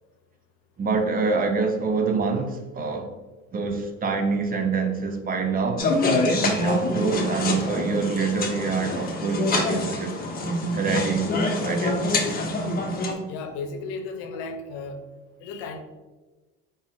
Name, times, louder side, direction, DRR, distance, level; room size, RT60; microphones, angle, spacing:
voice 1, 0.8-3.1 3.5-5.9 6.3-10.2 10.7-11.3 11.6-12.0, right 4 dB, 30° right, 6 dB, 0.5 m, -26 dB
sound 1, 5.8-13.1, left 2 dB, 30° left, 0.9 m, -25 dB
voice 2, 13.3-15.0 15.4-15.8, left 4 dB, 80° left, 5 dB, 0.7 m, -34 dB
4.5 x 2.8 x 3.5 m, 1.2 s
supercardioid pair, 115°, 30 cm